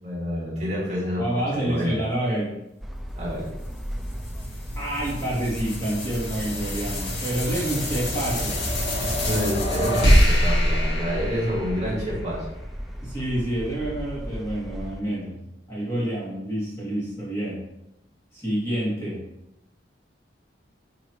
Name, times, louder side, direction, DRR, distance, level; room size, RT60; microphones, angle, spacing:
voice 1, 0.0-2.0 3.1-3.5 7.4-7.7 9.2-12.5, equal, 40° right, -5 dB, 2.4 m, -28 dB
voice 2, 1.2-2.6 4.8-8.6 13.0-17.6 18.3-19.2, right 1 dB, 15° left, -7 dB, 2.7 m, -28 dB
sound 1, 2.8-15.0, equal, ahead, 0.4 m, -35 dB
sound 2, 3.6-12.2, equal, 70° left, 1.8 m, -25 dB
10.0 x 4.0 x 3.1 m, 0.87 s
head